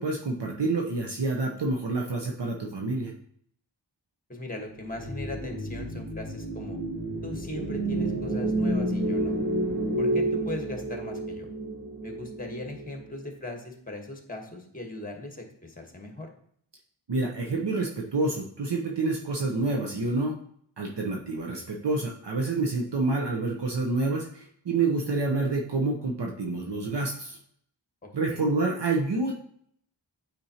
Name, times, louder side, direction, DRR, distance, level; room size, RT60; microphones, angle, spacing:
voice 1, 0.0-3.1 17.1-20.4 20.8-27.4 28.1-29.3, right 3 dB, 65° right, 0 dB, 0.8 m, -28 dB
voice 2, 4.3-6.8 7.2-9.4 10.0-11.5 12.0-16.3 28.0-28.4, left 2 dB, 20° left, 3 dB, 1.2 m, -39 dB
sound 1, 4.8-13.2, right 1 dB, 25° right, 1.7 m, -30 dB
8.7 x 4.3 x 2.8 m, 0.65 s
wide cardioid pair, 80°, 45 cm